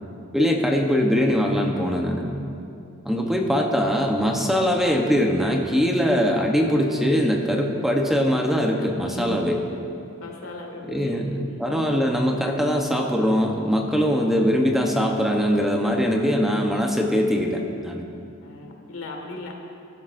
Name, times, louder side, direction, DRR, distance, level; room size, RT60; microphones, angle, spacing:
voice 1, 0.3-2.3 3.0-9.6 10.9-18.0, equal, ahead, 1 dB, 0.8 m, -22 dB
voice 2, 3.2-3.6 9.0-9.6 10.2-11.9 18.4-19.5, left 2 dB, 80° left, 1 dB, 1.9 m, -38 dB
21.0 x 12.0 x 2.6 m, 2.6 s
head